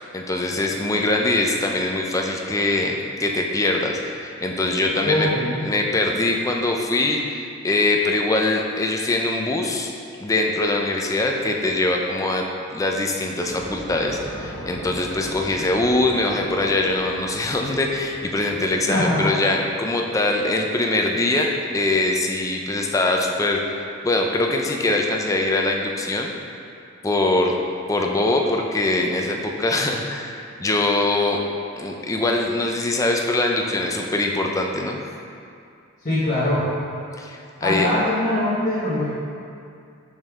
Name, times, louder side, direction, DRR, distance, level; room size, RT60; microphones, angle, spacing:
voice 1, 0.0-5.3 5.6-7.2 7.6-9.9 10.2-12.4 12.7-23.6 24.0-26.3 27.0-27.5 27.9-31.4 31.8-35.0 37.2-37.9, left 2 dB, 15° left, 1 dB, 0.4 m, -22 dB
voice 2, 5.0-5.6 18.9-19.4 36.0-36.7 37.6-39.1, left 1 dB, 40° left, -13 dB, 1.2 m, -22 dB
sound 1, 13.4-19.0, equal, 10° right, 1.2 m, -38 dB
5.3 x 5.3 x 3.6 m, 2.5 s
head